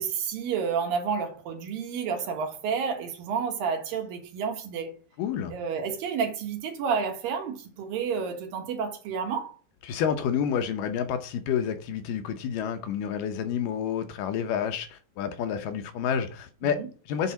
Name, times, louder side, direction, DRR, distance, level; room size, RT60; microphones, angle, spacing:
voice 1, 0.0-5.0 5.5-9.6 16.6-16.9, right 6 dB, 80° right, 3.1 m, -30 dB
voice 2, 5.2-5.5 9.9-17.3, left 8 dB, 75° left, 2.2 m, -29 dB
8.3 x 4.1 x 5.8 m
omnidirectional pair, 4.1 m